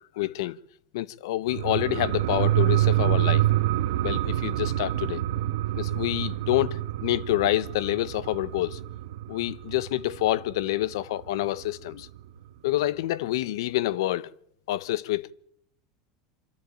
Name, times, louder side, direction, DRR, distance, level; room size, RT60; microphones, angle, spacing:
voice 1, 0.2-0.6 0.9-3.5 4.0-5.2 5.7-8.8 9.3-12.1 12.6-14.3 14.7-15.3, left 15 dB, 80° left, 0.8 m, -27 dB
sound 1, 1.5-10.6 10.9-11.0, right 14 dB, 75° right, 1.0 m, -26 dB
25.0 x 13.0 x 9.0 m
supercardioid pair, 150°, 2 cm